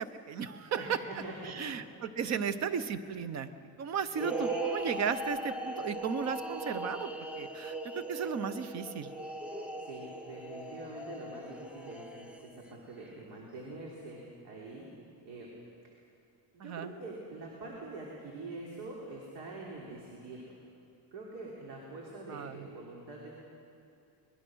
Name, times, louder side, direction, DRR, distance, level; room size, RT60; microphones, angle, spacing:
voice 1, 0.0-1.0 1.4-3.5 3.8-9.1 16.6-16.9 22.3-22.7, right 7 dB, 40° right, 12 dB, 0.9 m, -35 dB
voice 2, 0.8-1.7 2.2-2.3 9.5-14.9 15.3-15.5 16.5-20.5 21.1-23.3, right 2 dB, 70° right, -3 dB, 3.6 m, -45 dB
sound 1, 4.1-12.7, right 2 dB, 5° right, 0.6 m, -39 dB
24.0 x 21.0 x 6.3 m, 2.6 s
cardioid pair, 180°, 43 cm